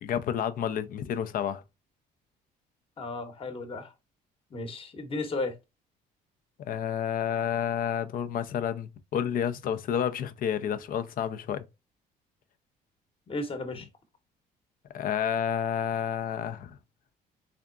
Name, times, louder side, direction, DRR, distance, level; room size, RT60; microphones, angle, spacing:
voice 1, 0.0-1.6 6.7-11.6 14.9-16.8, left 9 dB, 55° left, 0.5 m, -30 dB
voice 2, 3.0-3.9 4.5-5.5 13.3-13.9, left 2 dB, 35° left, 1.0 m, -34 dB
3.6 x 3.4 x 2.4 m
cardioid pair, 110°, 17 cm